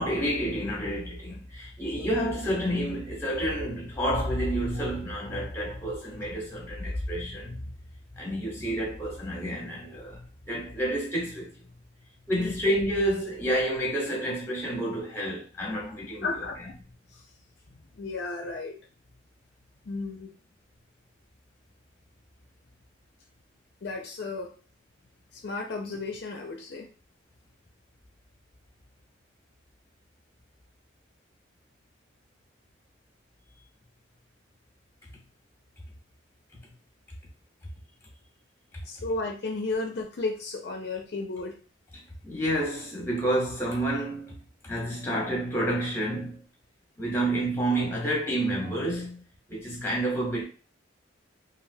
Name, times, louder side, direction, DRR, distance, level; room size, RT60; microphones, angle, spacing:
voice 1, 0.0-7.7 8.2-11.7 12.3-16.4 42.2-46.4 47.0-50.4, right 1 dB, 10° left, 1.0 m, -29 dB
voice 2, 16.2-16.7 17.1-17.2 17.9-18.8 19.8-20.3 23.8-24.5 25.3-26.9 38.9-41.6, left 3 dB, 55° left, 0.5 m, -33 dB
3.2 x 2.5 x 2.7 m
head